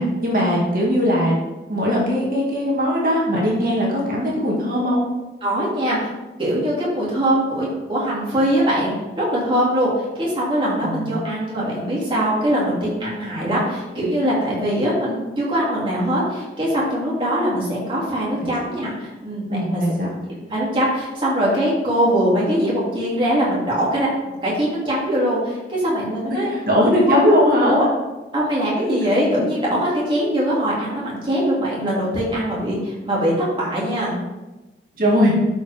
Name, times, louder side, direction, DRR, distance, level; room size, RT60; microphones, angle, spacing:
voice 1, 0.0-1.3 1.7-5.0 10.8-11.2 19.5-20.1 26.3-27.8 35.0-35.3, equal, 50° right, -4 dB, 2.1 m, -19 dB
voice 2, 5.4-6.1 6.4-19.8 20.4-24.1 24.4-26.5 27.1-27.2 27.6-27.9 28.3-34.1, equal, 30° right, -6 dB, 2.8 m, -22 dB
12.0 x 5.1 x 3.6 m, 1.1 s
head